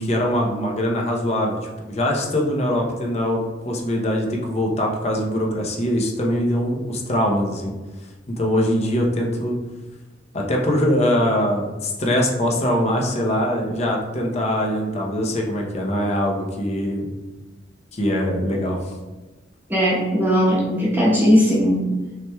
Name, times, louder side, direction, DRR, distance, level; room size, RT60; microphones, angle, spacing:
voice 1, 0.0-1.6 1.9-7.7 8.3-9.5 10.3-17.1 17.9-18.9, equal, 35° left, 0 dB, 0.7 m, -22 dB
voice 2, 19.7-21.9, equal, 10° right, -7 dB, 1.0 m, -18 dB
5.7 x 3.3 x 2.3 m, 1.2 s
head